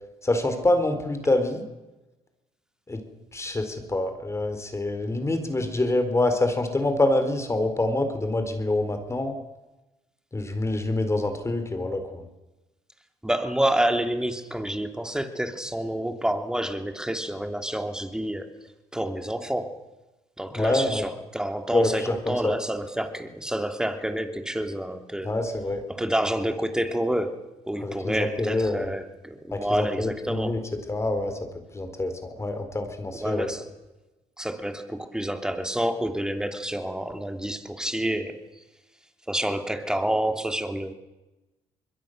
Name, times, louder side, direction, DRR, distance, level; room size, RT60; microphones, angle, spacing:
voice 1, 0.2-1.6 2.9-3.0 3.3-9.3 10.3-12.2 20.6-21.0 21.7-22.5 25.2-25.8 27.8-28.9 29.5-30.6 30.9-31.4 31.7-33.5, left 2 dB, 20° left, 7 dB, 4.2 m, -26 dB
voice 2, 13.2-18.4 18.9-19.8 20.4-25.3 25.9-27.4 27.7-30.6 33.2-33.7 34.4-38.4 39.3-40.9, right 1 dB, 5° right, 6 dB, 3.1 m, -28 dB
25.5 x 21.5 x 6.7 m, 1.1 s
supercardioid pair, 75°, 13 cm